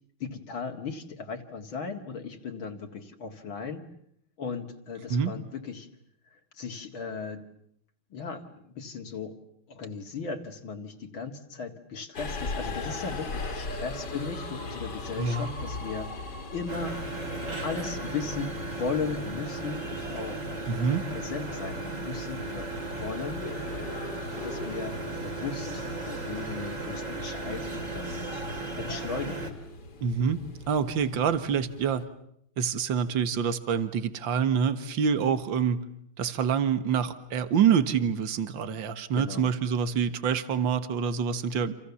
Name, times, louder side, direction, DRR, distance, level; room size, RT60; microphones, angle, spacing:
voice 1, 0.2-3.8 4.4-5.9 6.5-7.4 8.1-9.3 9.7-16.1 16.5-17.0 17.6-20.4 20.7-23.5 24.3-28.5 28.8-29.5 39.2-39.5, left 5 dB, 65° left, 3 dB, 2.9 m, -37 dB
Subway metro underground, 12.1-32.0, left 3 dB, 50° left, 2.9 m, -40 dB
voice 2, 15.2-15.5 20.7-21.0 30.0-30.4 30.7-32.1 32.6-35.9 36.2-41.7, right 7 dB, 60° right, 12 dB, 2.2 m, -26 dB
sound 1, 16.7-29.5, right 2 dB, 35° right, 3.6 m, -36 dB
29.5 x 27.5 x 7.1 m, 0.71 s
omnidirectional pair, 2.4 m